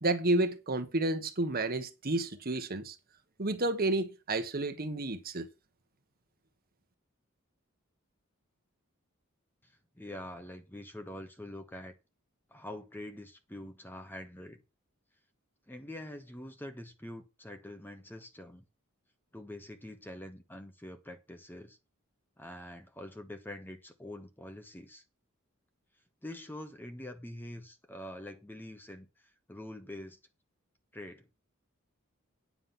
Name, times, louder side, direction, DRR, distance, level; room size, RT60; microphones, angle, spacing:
voice 1, 0.0-2.9 3.4-5.5, right 2 dB, 45° right, 1.3 m, -31 dB
voice 2, 9.6-11.9 12.5-14.6 15.7-18.7 19.3-21.8 22.4-25.0 26.2-30.2 30.9-31.3, left 1 dB, 10° left, 1.2 m, -45 dB
9.6 x 7.5 x 5.7 m
head